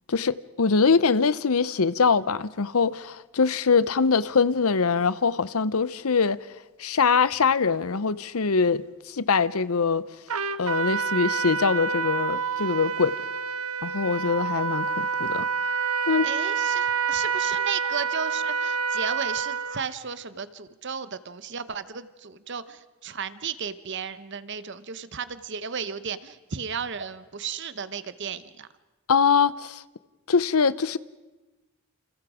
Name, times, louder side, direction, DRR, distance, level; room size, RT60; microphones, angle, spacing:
voice 1, 0.1-6.4 6.8-10.0 10.6-13.1 13.8-15.5 16.1-16.3 29.1-29.8 30.3-31.0, left 5 dB, 75° left, 0.8 m, -23 dB
Trumpet, 10.3-19.8, right 6 dB, 75° right, 1.1 m, -28 dB
voice 2, 16.2-28.7, right 6 dB, 50° right, 0.9 m, -34 dB
29.0 x 28.5 x 5.0 m
head